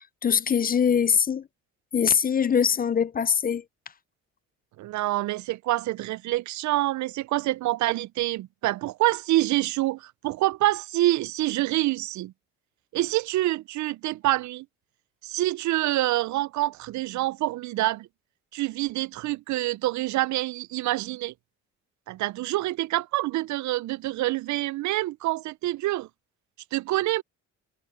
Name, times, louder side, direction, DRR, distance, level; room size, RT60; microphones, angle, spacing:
voice 1, 0.0-1.5 1.9-3.6, left 7 dB, 30° left, 0.5 m, -23 dB
voice 2, 4.8-12.3 12.9-14.7 15.2-18.1 18.5-21.3 22.1-26.1 26.7-27.2, right 16 dB, 70° right, 0.5 m, -26 dB
cardioid pair, 90°, 30 cm